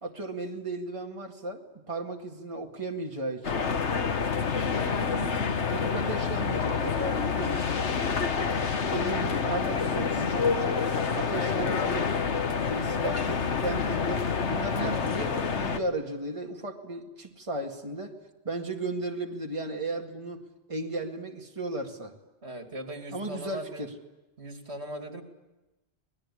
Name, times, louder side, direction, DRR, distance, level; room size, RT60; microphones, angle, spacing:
voice 1, 0.0-3.7 5.2-7.7 8.0-10.8 11.1-12.2 12.7-18.1 18.4-22.1 23.1-23.9, right 2 dB, 30° right, 1 dB, 2.2 m, -35 dB
sound 1, 3.4-15.8, left 5 dB, 90° left, 1.5 m, -28 dB
voice 2, 4.8-5.2 22.4-23.9 24.4-25.2, right 1 dB, 70° right, 4 dB, 2.9 m, -39 dB
26.5 x 20.0 x 10.0 m, 1.0 s
omnidirectional pair, 1.1 m